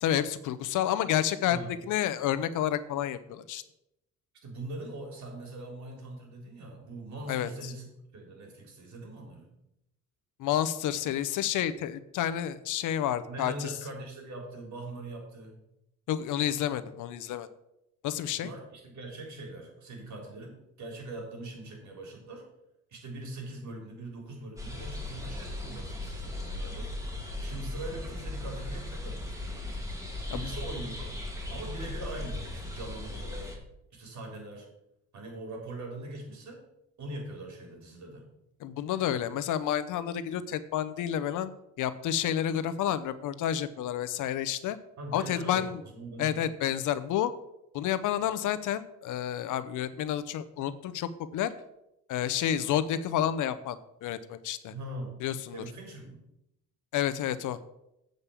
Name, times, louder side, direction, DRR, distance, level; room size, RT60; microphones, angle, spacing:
voice 1, 0.0-1.6 1.8-3.6 7.3-7.7 10.4-13.7 16.1-17.5 18.0-18.5 30.3-30.5 38.6-41.5 41.8-44.8 45.1-45.8 46.2-47.3 47.7-51.5 52.1-54.7 55.2-55.6 56.9-57.6, left 10 dB, 85° left, 14 dB, 0.8 m, -30 dB
voice 2, 1.5-1.8 4.4-9.5 13.3-15.5 18.3-22.4 22.9-26.9 27.4-29.8 30.3-31.1 31.5-33.5 33.9-34.7 35.1-36.6 37.0-38.2 45.0-46.5 54.7-55.2 55.5-56.2, right 2 dB, 65° right, 1 dB, 3.8 m, -42 dB
sound 1, 24.6-33.6, left 1 dB, 10° right, 2.6 m, -37 dB
8.4 x 5.3 x 7.3 m, 0.84 s
cardioid pair, 90°, 30 cm